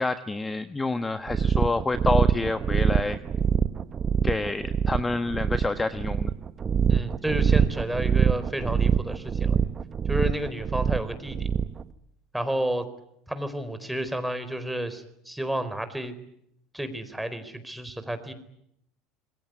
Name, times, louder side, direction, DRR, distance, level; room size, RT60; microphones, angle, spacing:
voice 1, 0.0-3.2 4.2-6.3, left 3 dB, 15° left, 11 dB, 1.4 m, -28 dB
sound 1, 1.3-11.8, right 7 dB, 35° right, 1.2 m, -24 dB
voice 2, 6.9-9.6 10.1-11.5 12.3-12.8 13.3-16.1 16.7-18.3, right 1 dB, 5° right, 10 dB, 4.4 m, -31 dB
27.0 x 22.5 x 9.6 m, 0.76 s
hypercardioid pair, 75°, 0 cm